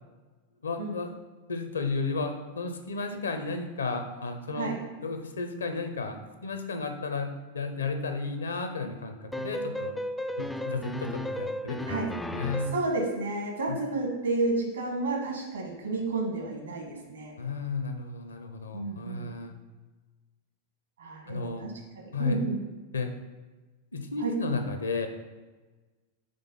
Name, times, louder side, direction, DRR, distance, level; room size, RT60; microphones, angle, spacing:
voice 1, 0.6-1.1 1.5-4.7 5.0-6.2 6.4-10.0 10.4-12.0 12.3-12.7 13.7-13.8 17.4-19.6 21.3-21.7 22.1-22.4 22.9-23.1 23.9-25.1, left 4 dB, 70° left, 7 dB, 0.7 m, -33 dB
sound 1, 9.3-12.9, equal, 5° left, 0.3 m, -34 dB
voice 2, 12.7-17.3 18.7-19.3 21.0-21.7 22.2-22.6 24.2-24.3, right 3 dB, 70° right, 0 dB, 1.4 m, -31 dB
5.3 x 3.6 x 5.5 m, 1.3 s
figure-of-eight pair, 90°, 0 cm